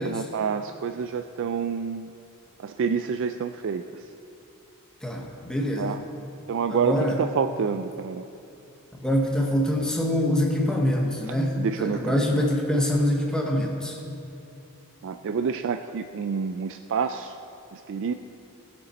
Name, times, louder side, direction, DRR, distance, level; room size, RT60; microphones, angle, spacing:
voice 1, 0.0-2.1 2.6-4.0 5.8-6.0 6.5-8.3 11.6-12.4 15.0-17.4 17.7-18.1, right 6 dB, 60° right, 8 dB, 0.4 m, -28 dB
voice 2, 5.0-5.9 6.7-7.2 9.0-14.0, left 1 dB, 5° left, 0 dB, 0.9 m, -25 dB
18.5 x 6.8 x 4.1 m, 2.7 s
head